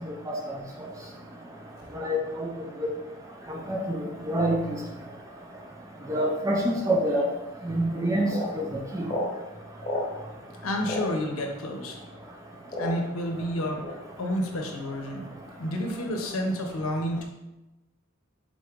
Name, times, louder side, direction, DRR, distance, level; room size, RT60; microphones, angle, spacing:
voice 1, 3.5-4.0 4.3-4.6 6.1-7.3 7.6-8.3 8.6-8.7 8.9-9.0, right 1 dB, 15° right, 0 dB, 0.4 m, -25 dB
sound 1, 7.5-7.6 8.3-8.5 9.0-9.3 9.8-10.1 10.8-11.1 11.9-12.0 12.7-13.2 13.8-14.0, left 1 dB, 30° left, 1.0 m, -30 dB
voice 2, 10.6-12.0 12.8-15.2 15.6-17.2, equal, 75° left, 2 dB, 0.7 m, -30 dB
4.0 x 2.5 x 4.5 m, 0.99 s
head